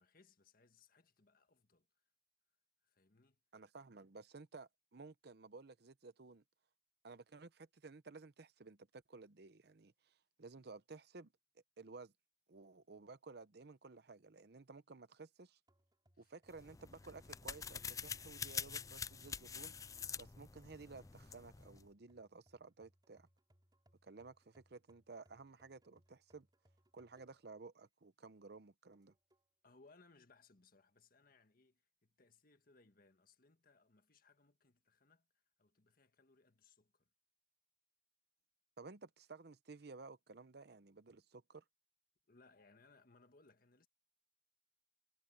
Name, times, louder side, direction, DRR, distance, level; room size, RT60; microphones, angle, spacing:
voice 1, 0.0-1.9 2.8-3.4 16.1-16.3 29.6-37.1 42.3-43.9, left 3 dB, 55° left, 1.7 m, -68 dB
voice 2, 3.5-6.4 7.0-11.3 11.8-12.1 12.5-15.6 16.2-19.7 20.2-23.3 24.0-26.5 26.9-29.1 38.8-41.6, right 3 dB, 65° right, 0.8 m, -55 dB
sound 1, 15.7-27.6 28.1-28.2 28.9-29.5, equal, 25° right, 6.5 m, -75 dB
sound 2, 16.5-21.9, left 6 dB, 20° left, 0.3 m, -46 dB
head